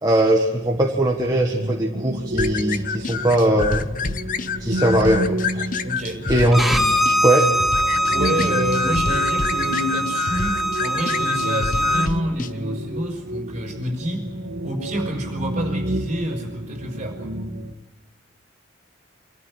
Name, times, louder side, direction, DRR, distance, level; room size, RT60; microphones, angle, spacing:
voice 1, 0.0-3.9 4.6-5.7 6.3-6.8 7.2-7.5, right 1 dB, 20° right, -1 dB, 1.6 m, -20 dB
sound 1, 0.6-17.7, right 1 dB, 75° right, 2.2 m, -31 dB
sound 2, 2.4-12.5, left 5 dB, 45° left, 0.9 m, -28 dB
voice 2, 5.8-6.5 8.1-14.3 14.6-17.3, equal, 40° right, 1 dB, 5.6 m, -28 dB
Bowed string instrument, 6.5-12.1, equal, ahead, 1.0 m, -22 dB
26.0 x 14.0 x 9.8 m, 1.1 s
head